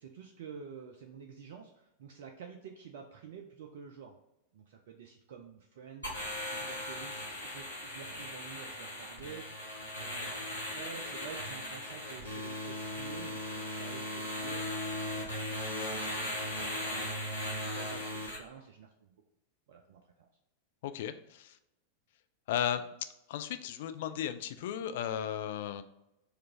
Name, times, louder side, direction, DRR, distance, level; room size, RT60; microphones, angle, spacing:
voice 1, 0.0-4.2 4.5-19.2 19.7-20.3, right 6 dB, 55° right, 3 dB, 0.4 m, -50 dB
sound 1, 6.0-18.4, left 1 dB, 85° left, 1.2 m, -38 dB
voice 2, 20.8-21.6 22.5-22.9 23.3-25.8, left 9 dB, 55° left, 10 dB, 0.3 m, -35 dB
4.7 x 2.5 x 3.6 m, 0.88 s
figure-of-eight pair, 90°, 0 cm